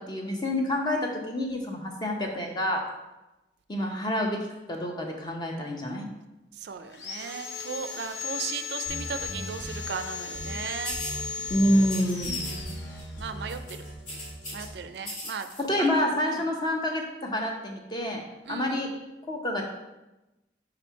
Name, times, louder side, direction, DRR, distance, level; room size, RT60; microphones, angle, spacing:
voice 1, 0.1-2.8 3.7-4.4 4.7-6.1 11.5-12.5 15.7-18.2 18.5-18.9 19.3-19.6, left 1 dB, 25° left, 1 dB, 0.8 m, -27 dB
voice 2, 6.6-11.0 12.3-12.9 13.2-13.8 14.5-15.5 15.8-16.5 18.4-18.8, right 6 dB, 65° right, 10 dB, 0.4 m, -37 dB
Sawing, 6.9-13.4, left 6 dB, 80° left, 0.8 m, -36 dB
sound 1, 8.9-9.9 10.3-10.6 10.9-11.2 11.5-14.8, equal, 65° left, 1.5 m, -40 dB
sound 2, 10.8-11.2 11.9-12.7 13.0-13.2 13.5-14.7 15.0-15.6, left 1 dB, 50° left, 1.8 m, -38 dB
5.0 x 4.3 x 4.6 m, 1.0 s
head